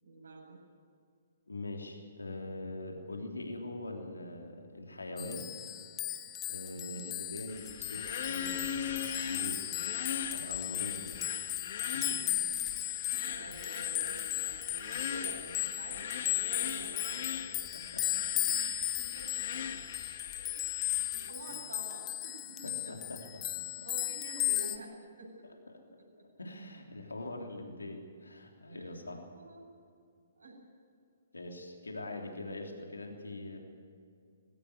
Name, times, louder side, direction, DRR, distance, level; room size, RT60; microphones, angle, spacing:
voice 1, 0.0-0.6 6.7-7.1 12.9-17.6 18.3-18.6 19.0-19.7 20.4-23.0 23.6-25.3 28.7-29.7 30.4-30.6, right 2 dB, 75° right, -1 dB, 7.7 m, -49 dB
voice 2, 1.5-5.5 6.5-9.6 10.3-11.2 11.5-11.7 11.9-12.6 17.7-18.2 21.4-21.6 22.6-23.8 25.7-25.8 26.4-29.2 31.3-33.6, left 2 dB, 75° left, 2 dB, 3.3 m, -43 dB
sound 1, 5.2-24.8, left 14 dB, 20° left, 1.2 m, -36 dB
sound 2, 7.5-21.3, left 7 dB, 50° left, 1.7 m, -41 dB
20.0 x 17.0 x 9.8 m, 2.3 s
figure-of-eight pair, 125°, 0 cm